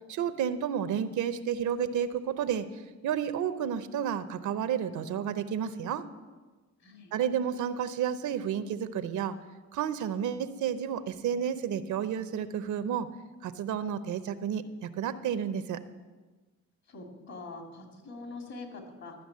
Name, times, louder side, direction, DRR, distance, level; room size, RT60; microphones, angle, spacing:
voice 1, 0.1-2.7 3.0-6.0 7.1-9.4 9.7-13.1 13.4-15.8, right 8 dB, 75° right, 12 dB, 0.8 m, -31 dB
voice 2, 6.8-7.1 16.9-19.1, left 3 dB, 60° left, 2 dB, 2.8 m, -44 dB
13.0 x 6.0 x 8.4 m, 1.3 s
cardioid pair, 90°, 30 cm